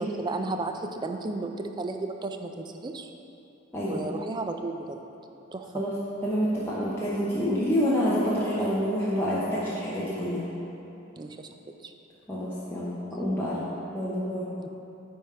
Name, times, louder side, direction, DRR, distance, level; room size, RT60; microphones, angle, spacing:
voice 1, 0.0-3.1 3.9-5.0 5.5-5.7 11.2-11.5 11.8-11.9 14.6-14.7, right 3 dB, 20° right, 6 dB, 0.3 m, -34 dB
voice 2, 6.2-10.4 12.3-13.6 13.9-14.5, equal, 10° left, -10 dB, 0.8 m, -27 dB
9.7 x 3.6 x 4.3 m, 3.0 s
head